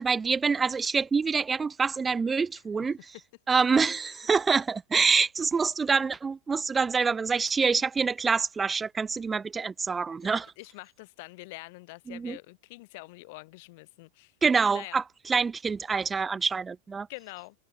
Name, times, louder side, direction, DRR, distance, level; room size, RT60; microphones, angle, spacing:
voice 1, 0.0-3.0 3.5-10.5 12.1-12.4 14.4-17.1, right 5 dB, 15° right, 1.7 m, -26 dB
voice 2, 10.6-14.3 14.7-15.0 17.1-17.6, left 24 dB, 50° left, 6.6 m, -45 dB
figure-of-eight pair, 90°, 0 cm